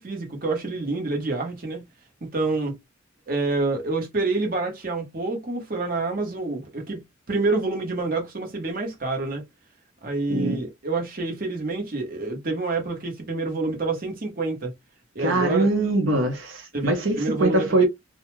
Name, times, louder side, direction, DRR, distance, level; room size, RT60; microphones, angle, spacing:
voice 1, 0.0-1.9 2.2-2.8 3.3-7.0 7.3-9.4 10.0-14.7 15.1-15.7 16.7-17.9, right 3 dB, 45° right, 1.0 m, -27 dB
voice 2, 10.3-10.6 15.2-17.9, right 2 dB, 80° right, 0.8 m, -22 dB
2.3 x 2.1 x 3.0 m
head